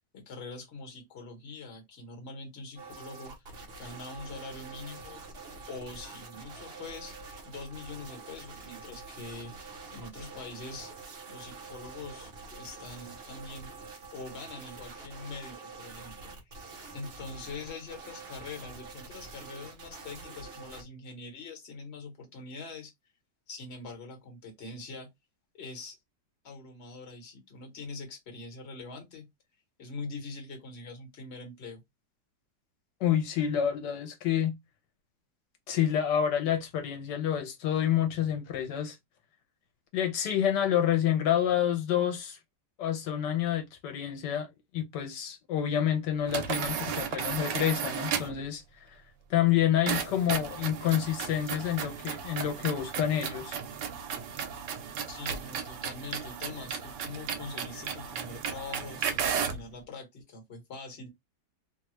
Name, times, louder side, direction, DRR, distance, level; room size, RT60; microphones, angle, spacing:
voice 1, 0.1-3.3 3.8-5.2 5.7-7.1 7.4-10.9 11.3-13.7 14.1-16.6 16.9-22.9 23.5-25.1 25.5-26.0 26.4-29.3 29.8-31.8 55.1-61.1, left 3 dB, 40° left, 1.2 m, -43 dB
sound 1, 2.8-20.8, right 4 dB, 45° right, 0.9 m, -46 dB
voice 2, 33.0-34.5 35.7-39.0 39.9-42.4 42.8-48.6 48.9-49.0 49.3-53.6, left 10 dB, 80° left, 1.2 m, -28 dB
sound 2, 46.3-48.4 49.9-59.7, right 7 dB, 85° right, 1.3 m, -34 dB
3.0 x 2.3 x 3.0 m
omnidirectional pair, 1.8 m